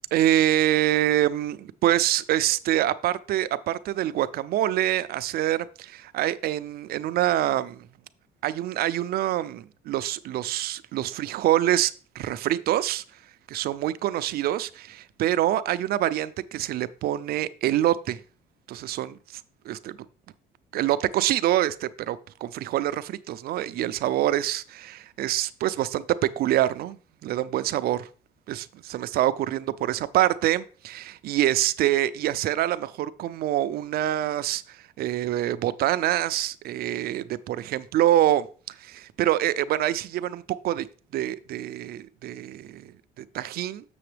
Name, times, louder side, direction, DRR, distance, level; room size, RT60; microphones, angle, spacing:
voice 1, 0.1-7.9 8.4-13.0 13.5-18.2 18.7-19.2 19.7-20.0 20.7-28.1 28.5-40.9 41.1-42.9 43.2-43.8, right 13 dB, 65° right, 0.5 m, -25 dB
6.9 x 6.8 x 3.3 m
cardioid pair, 110°, 17 cm